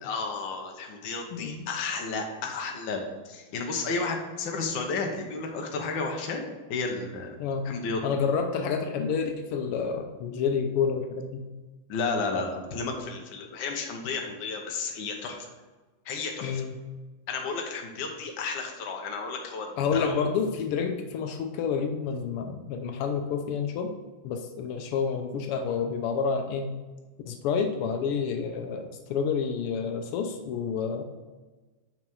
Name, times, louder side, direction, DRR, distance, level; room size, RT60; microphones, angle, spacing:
voice 1, 0.0-6.4 6.7-7.4 7.6-8.0 11.9-15.5 16.0-16.6 17.3-20.2, left 4 dB, 65° left, 2 dB, 1.6 m, -32 dB
voice 2, 8.0-11.5 16.4-16.8 19.8-23.9 24.2-26.7 27.3-31.0, left 6 dB, 85° left, 5 dB, 1.6 m, -29 dB
6.0 x 4.6 x 5.3 m, 1.3 s
omnidirectional pair, 2.4 m